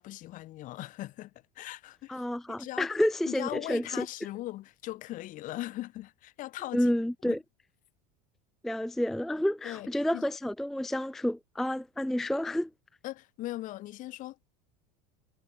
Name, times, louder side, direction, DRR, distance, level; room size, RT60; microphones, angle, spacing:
voice 1, 0.0-2.9 3.3-6.9 7.3-7.4 9.6-10.2 13.0-14.4, left 16 dB, 45° left, 1.9 m, -39 dB
voice 2, 2.1-4.1 6.7-7.4 8.6-12.7, left 1 dB, ahead, 0.4 m, -29 dB
supercardioid pair, 145°, 19 cm